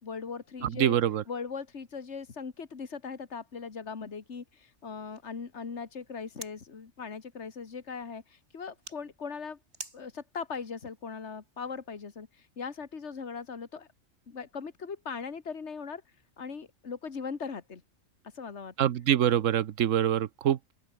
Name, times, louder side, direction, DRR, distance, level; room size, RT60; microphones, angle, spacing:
voice 1, 0.0-1.0 1.3-9.6 9.9-13.9 14.3-16.0 16.4-17.8 18.3-18.7, left 5 dB, 65° left, 2.2 m, -39 dB
voice 2, 0.6-1.2 18.8-20.7, right 10 dB, 90° right, 1.2 m, -25 dB
sound 1, 2.6-12.0, right 1 dB, 60° right, 7.7 m, -53 dB
open air
omnidirectional pair, 1.3 m